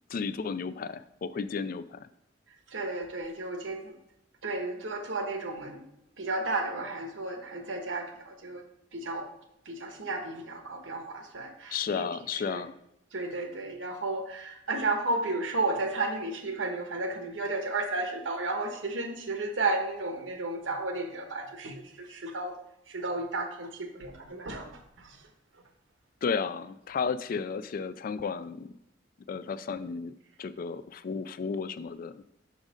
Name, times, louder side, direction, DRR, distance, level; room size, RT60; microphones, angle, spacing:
voice 1, 0.1-2.1 11.7-12.8 26.2-28.7 29.3-30.1 30.4-32.2, left 5 dB, 50° left, 14 dB, 0.3 m, -33 dB
voice 2, 2.7-4.0 4.4-5.8 6.2-8.6 8.9-9.3 9.6-12.1 12.3-12.6 13.1-25.2, right 2 dB, 90° right, 4 dB, 1.1 m, -33 dB
6.1 x 4.0 x 4.9 m, 0.82 s
head